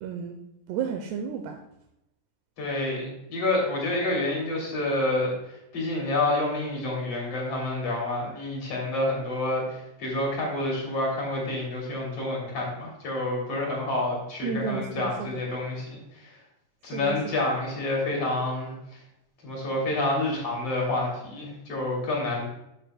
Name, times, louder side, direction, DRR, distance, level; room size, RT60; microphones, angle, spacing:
voice 1, 0.0-0.4 0.7-1.6 14.4-15.4 16.9-17.3, right 6 dB, 80° right, 4 dB, 2.7 m, -32 dB
voice 2, 2.6-5.3 5.7-15.9 16.1-16.3 16.8-18.7 19.4-22.5, left 2 dB, 40° left, -2 dB, 3.1 m, -28 dB
12.5 x 7.9 x 2.2 m, 0.85 s
omnidirectional pair, 4.9 m